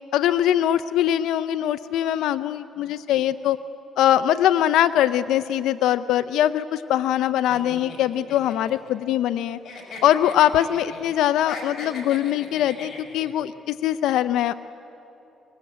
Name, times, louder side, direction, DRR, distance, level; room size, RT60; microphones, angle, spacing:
voice 1, 0.1-3.6 4.0-9.6 10.0-14.5, left 11 dB, 85° left, 11 dB, 0.5 m, -22 dB
sound 1, 7.5-9.4 9.6-11.0 11.3-13.3, left 4 dB, 65° left, 5.7 m, -39 dB
25.5 x 20.5 x 7.9 m, 3.0 s
cardioid pair, 90°, 0 cm